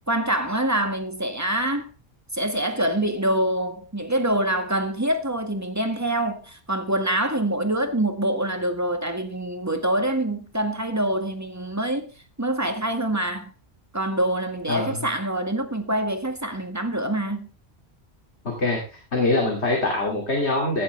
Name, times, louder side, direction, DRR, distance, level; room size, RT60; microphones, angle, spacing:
voice 1, 0.1-1.9 2.3-12.1 12.4-13.5 13.9-17.5, right 1 dB, 15° right, 1.9 m, -25 dB
voice 2, 14.7-15.1 18.6-20.8, left 2 dB, 85° left, 3.0 m, -24 dB
15.5 x 10.5 x 3.4 m
omnidirectional pair, 1.1 m